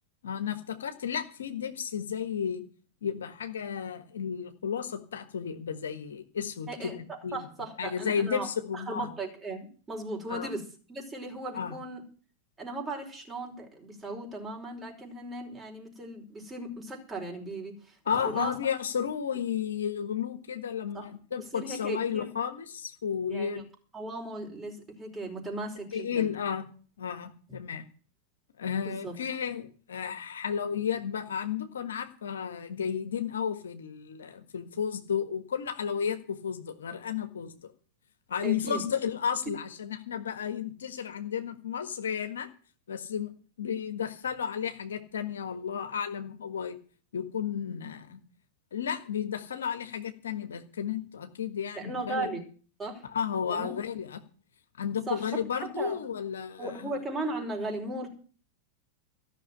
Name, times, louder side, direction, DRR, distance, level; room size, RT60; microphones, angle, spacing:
voice 1, 0.2-2.6 3.0-7.4 7.8-9.1 10.3-10.5 11.5-11.8 18.0-23.6 25.9-26.7 27.0-27.8 28.6-37.7 38.3-42.5 42.9-43.3 43.6-46.8 47.1-48.2 48.7-52.3 53.0-54.2 54.8-56.9, left 7 dB, 75° left, 8 dB, 1.5 m, -33 dB
voice 2, 6.7-12.0 12.6-18.5 20.9-21.1 21.4-22.3 23.3-23.6 23.9-26.3 28.8-29.2 38.4-38.8 51.7-52.5 52.8-53.0 53.5-53.7 55.1-55.3 55.6-56.0 56.6-58.1, right 2 dB, 20° right, 1 dB, 4.9 m, -37 dB
14.0 x 6.5 x 9.7 m, 0.41 s
hypercardioid pair, 95°, 0 cm